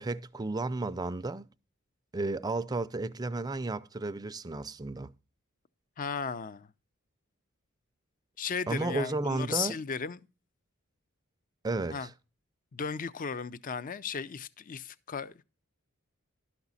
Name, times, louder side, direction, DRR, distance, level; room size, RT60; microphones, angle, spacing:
voice 1, 0.0-1.4 2.1-5.1 8.7-9.8 11.6-12.1, right 2 dB, 20° right, 0.4 m, -33 dB
voice 2, 6.0-6.7 8.4-10.2 11.9-12.1 12.7-15.4, left 6 dB, 40° left, 0.5 m, -35 dB
12.0 x 6.0 x 4.0 m
head